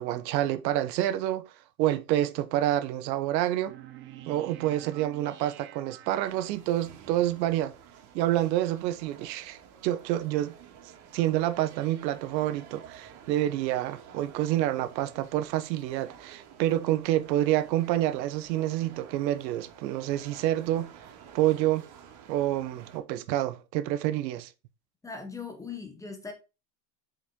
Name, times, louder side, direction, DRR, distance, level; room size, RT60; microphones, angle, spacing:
voice 1, 0.0-1.5 1.8-3.7 4.3-7.7 8.1-10.5 11.1-20.9 21.3-21.9 22.3-24.5, right 13 dB, 85° right, 1.1 m, -28 dB
sound 1, 3.7-7.0, right 12 dB, 25° right, 0.6 m, -48 dB
sound 2, 6.2-23.0, right 8 dB, 60° right, 2.5 m, -51 dB
voice 2, 25.0-26.3, left 5 dB, 5° left, 0.9 m, -39 dB
6.3 x 5.4 x 3.7 m
supercardioid pair, 170°, 49 cm